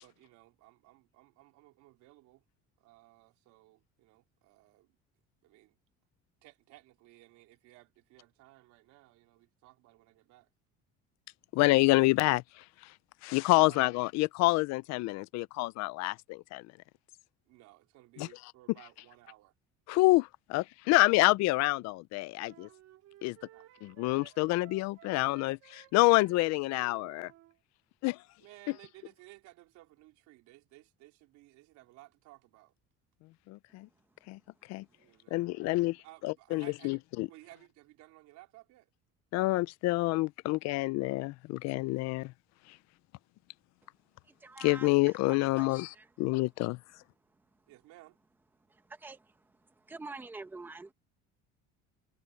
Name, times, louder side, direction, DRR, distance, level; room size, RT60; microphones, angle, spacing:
voice 1, 0.0-2.4 2.8-4.9 5.4-5.8 6.4-10.5 13.5-14.0 15.4-15.5 17.5-19.5 23.5-24.1 28.4-32.7 34.9-38.9 47.7-48.2, right 18 dB, 75° right, 4.1 m, -57 dB
voice 2, 11.5-12.6 13.2-16.6 18.2-18.3 19.9-22.7 23.2-23.4 23.8-27.3 28.0-28.2 33.5-33.9 34.3-34.4 34.7-34.8 35.3-36.0 36.2-37.3 39.3-42.3 44.6-46.8, left 21 dB, 65° left, 0.5 m, -27 dB
sound 1, 22.4-27.5, right 15 dB, 55° right, 3.7 m, -56 dB
voice 3, 44.4-44.9 45.3-46.1 48.9-49.3 49.9-50.9, right 3 dB, 5° right, 1.0 m, -46 dB
cardioid pair, 180°, 29 cm